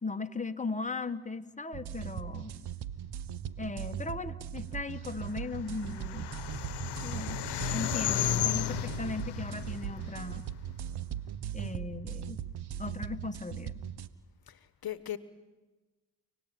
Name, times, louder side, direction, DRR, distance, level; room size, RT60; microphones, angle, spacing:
voice 1, 0.0-2.5 3.6-6.3 7.0-7.4 7.7-10.4 11.5-12.4 12.8-13.7, left 3 dB, 20° left, 8 dB, 1.7 m, -38 dB
sound 1, 1.7-14.1, right 9 dB, 70° right, 1.3 m, -39 dB
sound 2, 5.4-10.8, left 12 dB, 80° left, 1.2 m, -34 dB
voice 2, 14.5-15.2, left 12 dB, 60° left, 14 dB, 1.3 m, -38 dB
29.0 x 20.0 x 9.3 m, 1.2 s
cardioid pair, 65°, 40 cm